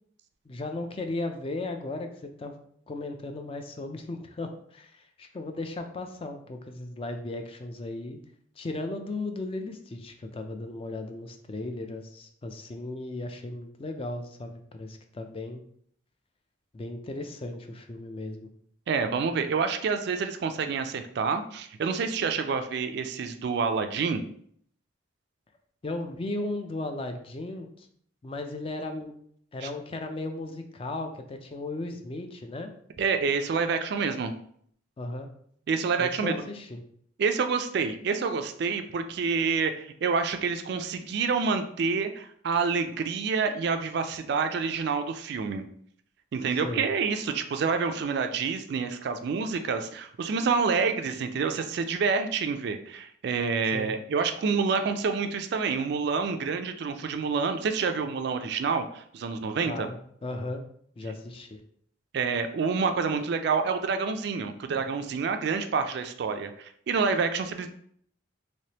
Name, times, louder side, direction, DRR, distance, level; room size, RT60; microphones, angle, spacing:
voice 1, 0.5-2.5 2.9-8.2 8.6-15.6 16.7-18.5 25.8-27.9 28.2-29.1 29.5-32.7 35.0-35.3 36.0-36.8 46.5-46.9 53.6-53.9 59.7-60.6 61.0-61.6, left 2 dB, 30° left, 5 dB, 0.3 m, -36 dB
voice 2, 18.9-24.2 29.6-29.7 33.0-34.3 35.7-36.3 37.2-45.7 46.3-59.9 62.1-67.7, right 5 dB, 55° right, 7 dB, 0.3 m, -28 dB
3.3 x 2.9 x 2.8 m, 0.64 s
head